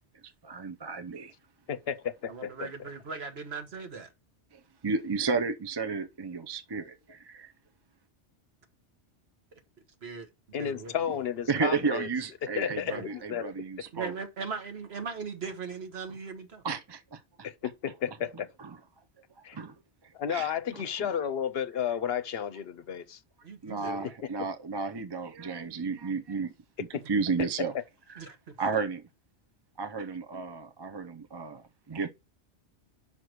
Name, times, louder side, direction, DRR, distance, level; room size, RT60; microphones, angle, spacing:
voice 1, 0.4-1.3 4.5-7.5 11.5-14.1 16.6-17.2 18.6-18.8 19.5-19.7 20.0-21.1 23.6-26.5 26.9-27.7 28.1-28.2 28.6-29.0 29.8-32.1, right 4 dB, 30° right, 0.5 m, -33 dB
voice 2, 1.7-2.7 10.5-12.1 12.6-13.5 17.4-18.5 19.4-19.6 20.1-23.2 26.9-27.0, left 8 dB, 65° left, 0.8 m, -32 dB
voice 3, 2.3-4.1 10.0-10.9 12.7-13.1 13.9-16.7 23.4-24.1 28.2-28.6, right 5 dB, 65° right, 1.5 m, -39 dB
5.7 x 4.6 x 6.5 m
omnidirectional pair, 1.2 m